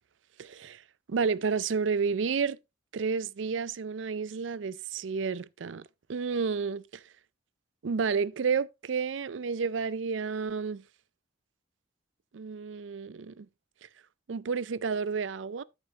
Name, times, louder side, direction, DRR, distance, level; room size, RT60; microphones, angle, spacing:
voice 1, 0.4-0.8 1.1-2.6 2.9-7.0 7.8-10.8 12.3-13.5 13.8-13.9 14.3-15.6, right 5 dB, 85° right, 0.5 m, -31 dB
12.5 x 6.7 x 2.8 m
head